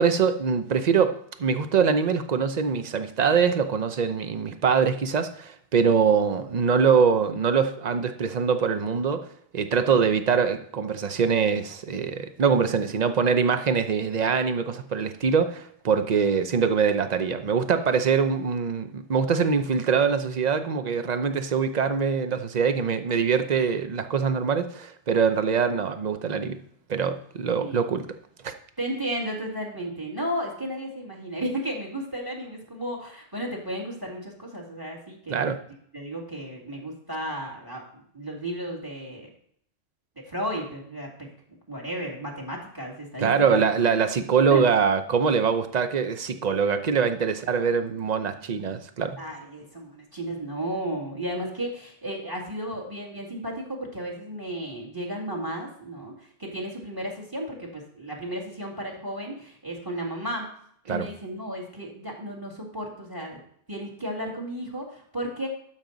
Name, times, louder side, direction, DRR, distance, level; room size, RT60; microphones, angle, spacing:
voice 1, 0.0-9.3 9.5-26.6 26.9-28.1 28.4-28.5 35.3-35.6 43.2-49.2 60.9-61.1, right 6 dB, 45° right, 9 dB, 0.7 m, -23 dB
voice 2, 28.8-35.6 35.9-39.3 40.2-41.3 41.7-43.6 44.5-44.6 49.2-56.1 56.4-60.5 60.9-63.4 63.7-65.5, right 1 dB, 20° right, 0 dB, 2.1 m, -33 dB
12.0 x 5.8 x 3.9 m, 0.65 s
omnidirectional pair, 1.2 m